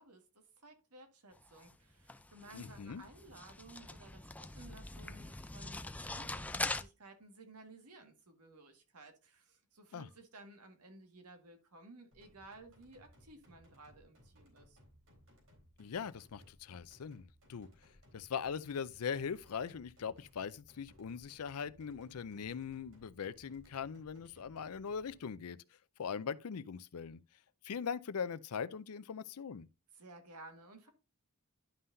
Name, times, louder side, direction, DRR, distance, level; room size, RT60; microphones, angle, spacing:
voice 1, 0.0-14.8 29.9-30.9, right 2 dB, 90° right, 1.8 m, -56 dB
sound 1, 1.4-6.8, left 2 dB, 5° left, 0.4 m, -43 dB
voice 2, 2.5-3.0 9.9-10.1 15.8-17.2 17.5-17.7 18.1-25.6 26.0-27.2 27.6-29.7, left 6 dB, 75° left, 0.5 m, -41 dB
sound 2, 12.1-25.2, equal, 65° right, 3.8 m, -64 dB
11.5 x 5.6 x 2.6 m
head